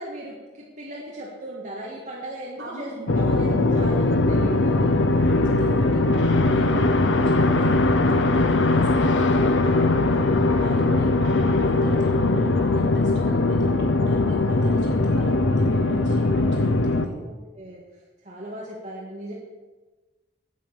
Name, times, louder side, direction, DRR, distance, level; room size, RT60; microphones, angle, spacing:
voice 1, 0.0-5.0 10.6-11.1 17.0-19.3, right 1 dB, 45° right, -4 dB, 1.7 m, -38 dB
voice 2, 2.6-3.3 5.2-17.1, right 2 dB, 75° right, -5 dB, 4.9 m, -38 dB
sound 1, 3.1-17.1, left 2 dB, 85° left, 0.8 m, -20 dB
9.2 x 8.7 x 7.3 m, 1.2 s
head